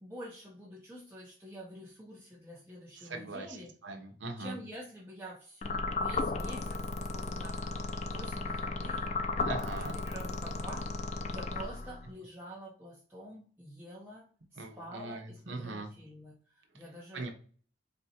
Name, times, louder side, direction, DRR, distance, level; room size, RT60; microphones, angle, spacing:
voice 1, 0.0-3.7 4.4-17.3, equal, 10° right, -5 dB, 0.7 m, -48 dB
voice 2, 3.0-3.6 3.8-4.6 9.5-10.0 14.6-15.9 17.1-17.3, right 3 dB, 85° right, 4 dB, 0.8 m, -40 dB
sound 1, 5.6-12.1, left 3 dB, 35° left, 0.3 m, -35 dB
4.1 x 3.5 x 2.8 m, 0.43 s
head